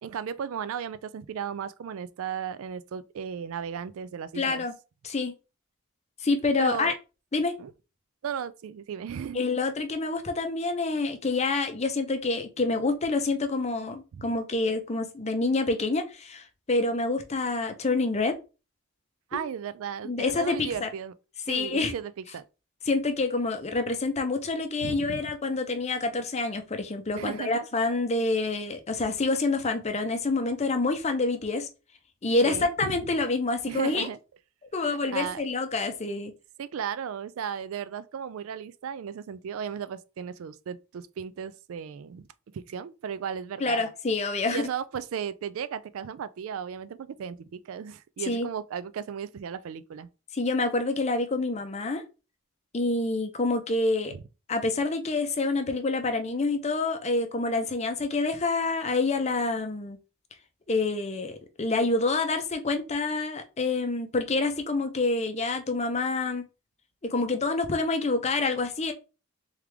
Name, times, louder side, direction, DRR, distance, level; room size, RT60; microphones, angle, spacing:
voice 1, 0.0-4.6 6.6-6.9 7.6-7.7 8.2-9.4 14.1-14.2 19.3-21.1 21.5-22.4 24.8-25.2 27.1-27.7 32.4-33.0 33.7-34.2 34.8-35.4 36.6-42.2 42.5-43.8 44.5-50.1, right 7 dB, 65° right, 0.3 m, -35 dB
voice 2, 4.4-4.7 5.0-5.3 6.2-6.9 7.3-7.5 9.3-18.3 19.3-19.4 20.0-20.9 21.5-21.9 22.9-31.7 32.2-34.1 34.7-36.3 43.6-44.7 48.3-48.5 50.3-52.0 52.7-54.1 54.5-60.0 60.7-66.4 67.1-68.9, left 3 dB, 30° left, 0.6 m, -27 dB
3.6 x 3.3 x 3.3 m
head